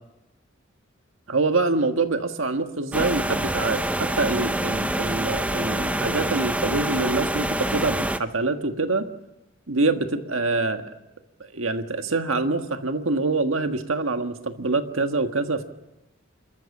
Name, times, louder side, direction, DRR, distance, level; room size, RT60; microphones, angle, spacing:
voice 1, 1.3-9.1 9.7-10.9 11.4-15.6, right 3 dB, 75° right, 7 dB, 1.6 m, -25 dB
sound 1, 2.9-8.2, right 1 dB, 5° right, 0.8 m, -26 dB
29.5 x 14.0 x 7.2 m, 0.98 s
head